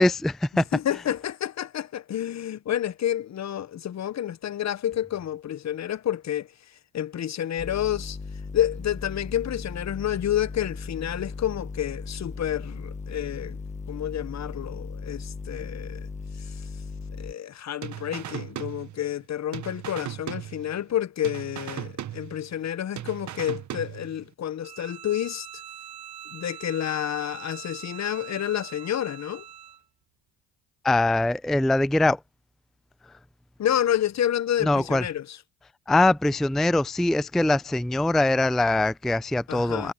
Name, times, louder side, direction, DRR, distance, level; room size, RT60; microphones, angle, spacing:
voice 1, 0.0-0.6 30.8-32.2 34.6-35.0 35.9-39.9, left 2 dB, ahead, 0.4 m, -22 dB
voice 2, 0.7-6.5 6.9-8.2 8.5-13.6 13.9-16.1 16.4-16.5 17.2-25.5 26.3-29.4 33.6-35.4 39.5-39.9, left 11 dB, 45° left, 1.0 m, -29 dB
sound 1, 7.6-17.3, left 4 dB, 20° left, 1.0 m, -37 dB
sound 2, 17.8-19.3 19.5-21.0 21.2-22.7 23.0-24.3, right 11 dB, 50° right, 1.1 m, -37 dB
Bowed string instrument, 24.6-29.9, right 9 dB, 75° right, 5.0 m, -43 dB
supercardioid pair, 80°, 37 cm